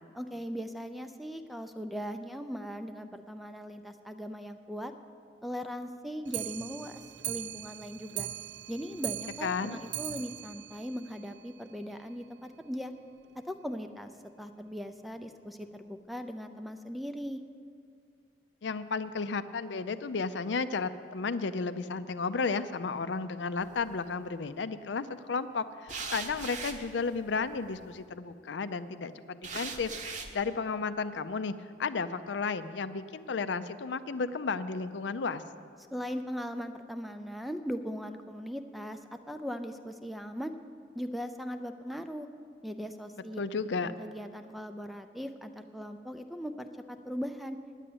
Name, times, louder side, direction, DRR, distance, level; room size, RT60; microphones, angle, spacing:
voice 1, 0.1-4.9 5.4-8.3 8.7-12.9 13.4-14.1 14.4-17.4 35.9-39.0 39.3-40.5 40.9-42.3 42.6-43.4 43.8-47.6, equal, ahead, 8 dB, 0.4 m, -39 dB
Clock, 6.3-11.8 12.1-12.2 12.5-12.6 12.9-13.0 13.2-13.3 14.0-14.1 14.8-14.9 15.6-15.7, right 13 dB, 65° right, 0.4 m, -40 dB
voice 2, 9.4-9.8 18.6-31.5 31.8-35.4 43.4-43.9, left 4 dB, 75° left, 12 dB, 0.5 m, -33 dB
sound 1, 23.6-24.2 25.9-27.9 29.4-30.4, right 4 dB, 40° right, 0.9 m, -40 dB
10.0 x 9.0 x 8.6 m, 2.3 s
head